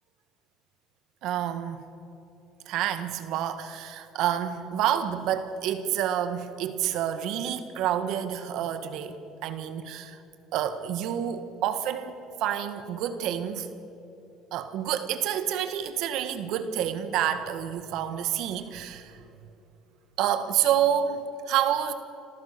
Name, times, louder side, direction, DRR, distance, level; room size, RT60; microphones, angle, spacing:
voice 1, 1.2-1.8 2.7-10.2 10.5-13.7 14.5-19.2 20.2-21.9, right 10 dB, 70° right, 10 dB, 1.6 m, -28 dB
27.0 x 14.0 x 6.8 m, 2.9 s
supercardioid pair, 100°, 0 cm